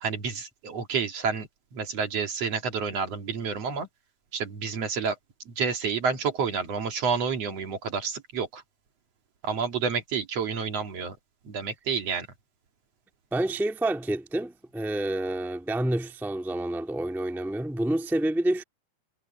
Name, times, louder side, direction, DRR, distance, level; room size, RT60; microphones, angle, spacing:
voice 1, 0.0-3.9 4.3-5.2 5.5-8.6 9.4-11.2 11.4-12.3, right 5 dB, 55° right, 3.1 m, -29 dB
voice 2, 13.3-18.6, right 1 dB, ahead, 1.4 m, -28 dB
omnidirectional pair, 3.6 m